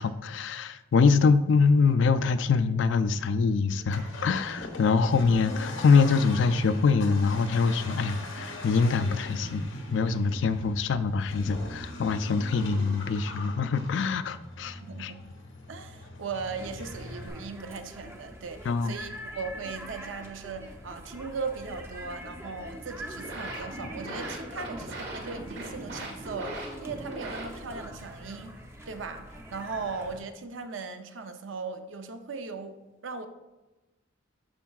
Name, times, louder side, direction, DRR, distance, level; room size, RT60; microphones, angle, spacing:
voice 1, 0.0-9.6 9.9-15.1 18.7-18.9, left 4 dB, 70° left, 13 dB, 0.4 m, -24 dB
Accelerating revving vroom, 3.8-17.3, left 2 dB, 90° left, 1.1 m, -41 dB
voice 2, 14.8-15.2 15.7-28.6 28.9-32.8 33.0-33.3, right 4 dB, 85° right, 8 dB, 0.6 m, -38 dB
sound 1, 16.6-30.2, equal, 15° right, 0.6 m, -44 dB
sound 2, 22.9-27.9, right 1 dB, 60° right, 1.6 m, -40 dB
11.5 x 4.6 x 2.3 m, 1.1 s
head